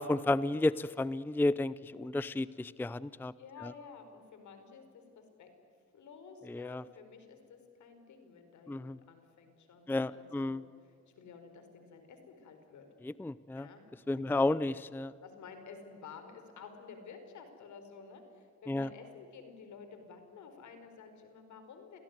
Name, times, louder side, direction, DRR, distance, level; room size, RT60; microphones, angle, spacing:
voice 1, 0.0-3.3 3.6-3.7 6.5-6.8 8.7-9.0 9.9-10.6 13.0-13.7 14.1-15.1 18.7-18.9, left 2 dB, 5° left, 18 dB, 0.5 m, -32 dB
voice 2, 3.4-5.5 5.9-12.9 13.6-13.8 14.1-14.7 15.2-22.0, left 5 dB, 70° left, 7 dB, 4.8 m, -52 dB
27.5 x 17.5 x 9.6 m, 2.4 s
cardioid pair, 90°, 30 cm